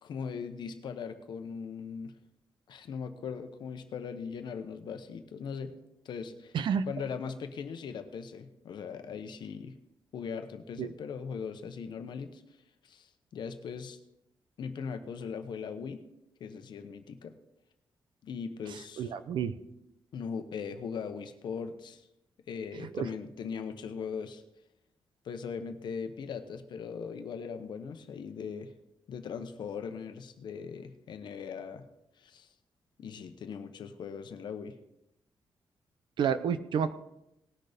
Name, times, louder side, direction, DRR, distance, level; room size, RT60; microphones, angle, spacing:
voice 1, 0.0-2.1 2.7-5.7 6.0-6.5 6.9-9.7 10.1-12.4 12.8-14.0 14.6-16.0 16.4-17.3 18.2-19.1 20.1-22.0 22.5-24.4 25.2-28.7 29.1-31.9 32.2-32.5 33.0-34.8, left 6 dB, 60° left, 8 dB, 0.9 m, -39 dB
voice 2, 6.5-6.9 10.8-10.9 18.7-19.6 22.8-23.1 36.2-36.9, right 7 dB, 65° right, 12 dB, 0.7 m, -30 dB
18.5 x 6.5 x 5.1 m, 0.85 s
wide cardioid pair, 175°, 9 cm